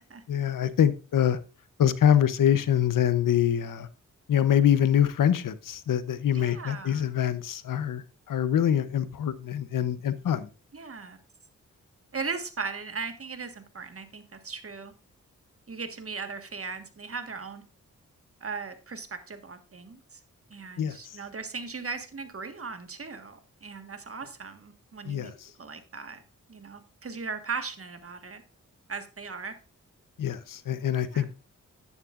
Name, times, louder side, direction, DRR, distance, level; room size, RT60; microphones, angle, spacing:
voice 1, 0.3-1.4 1.8-3.9 4.3-10.5 20.8-21.2 25.0-25.5 30.2-31.3, left 9 dB, 85° left, 0.8 m, -25 dB
voice 2, 6.3-7.1 10.7-11.2 12.1-14.9 15.7-17.6 18.4-20.2 20.5-25.3 25.6-26.2 26.5-28.4 28.9-29.6 31.1-31.2, right 5 dB, 45° right, 1.5 m, -38 dB
11.0 x 9.7 x 2.4 m
cardioid pair, 55°, 32 cm